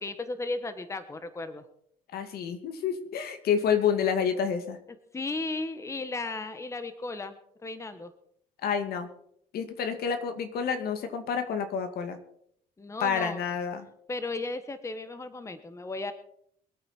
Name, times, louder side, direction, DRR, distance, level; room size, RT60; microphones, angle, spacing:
voice 1, 0.0-1.6 5.1-7.4 7.6-8.1 12.8-13.4 14.1-16.1, left 3 dB, 15° left, 10 dB, 1.2 m, -35 dB
voice 2, 2.1-4.8 8.6-9.1 9.5-12.2 13.0-13.9, left 7 dB, 65° left, 8 dB, 2.2 m, -29 dB
23.5 x 8.9 x 4.4 m, 0.68 s
cardioid pair, 110°, 17 cm